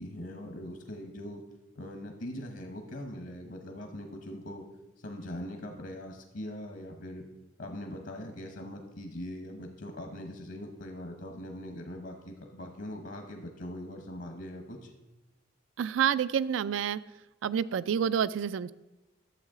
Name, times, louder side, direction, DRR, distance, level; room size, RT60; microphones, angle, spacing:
voice 1, 0.0-1.4 1.7-4.7 5.0-7.3 7.6-14.9, left 1 dB, 65° left, 4 dB, 1.0 m, -41 dB
voice 2, 15.8-17.0 17.4-18.7, right 8 dB, 70° right, 18 dB, 0.3 m, -28 dB
11.5 x 7.4 x 3.7 m, 1.0 s
head